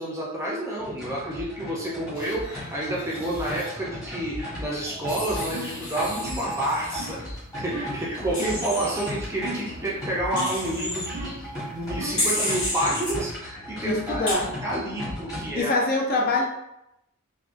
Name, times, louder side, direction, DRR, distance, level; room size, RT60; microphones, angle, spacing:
voice 1, 0.0-7.2 7.5-14.3 14.6-15.8, right 1 dB, 15° right, -4 dB, 0.5 m, -29 dB
sound 1, 0.8-15.6, equal, 15° left, 1.0 m, -36 dB
Wild animals, 2.1-3.7 5.1-7.1 8.3-9.1 10.4-11.1 12.2-13.1 14.3-14.4, left 1 dB, 75° left, 1.3 m, -32 dB
sound 2, 5.5-5.8 6.2-6.6 7.0-7.2 7.7-8.0 9.4-9.8 10.3-10.7 11.1-11.5 12.0-12.3, right 1 dB, 70° right, 0.6 m, -36 dB
voice 2, 13.8-14.5 15.4-16.5, left 2 dB, 45° left, 0 dB, 0.5 m, -24 dB
3.5 x 2.2 x 2.5 m, 0.86 s
head